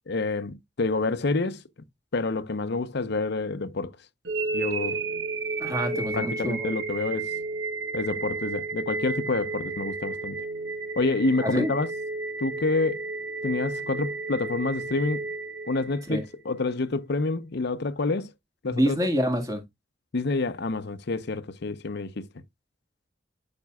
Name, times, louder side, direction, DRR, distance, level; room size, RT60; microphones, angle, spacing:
voice 1, 0.1-1.6 2.1-4.0 4.5-5.0 6.1-7.3 7.9-10.5 11.0-11.9 12.4-13.0 13.4-15.2 15.7-18.3 18.6-19.0 20.1-22.3, left 3 dB, 60° left, 0.7 m, -28 dB
sound 1, 4.2-16.3, right 3 dB, 70° right, 1.6 m, -32 dB
voice 2, 5.6-6.8 11.4-11.7 16.1-16.2 18.7-19.6, equal, 20° right, 1.7 m, -27 dB
11.5 x 5.3 x 2.3 m
head